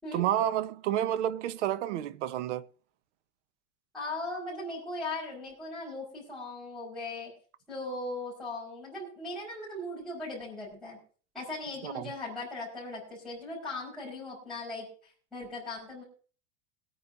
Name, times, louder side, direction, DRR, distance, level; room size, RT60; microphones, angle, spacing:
voice 1, 0.1-2.6 11.8-12.1, right 11 dB, 85° right, 1.1 m, -30 dB
voice 2, 3.9-7.3 7.7-11.0 11.3-16.0, left 2 dB, ahead, 4.9 m, -38 dB
23.0 x 9.3 x 2.6 m
supercardioid pair, 165°, 34 cm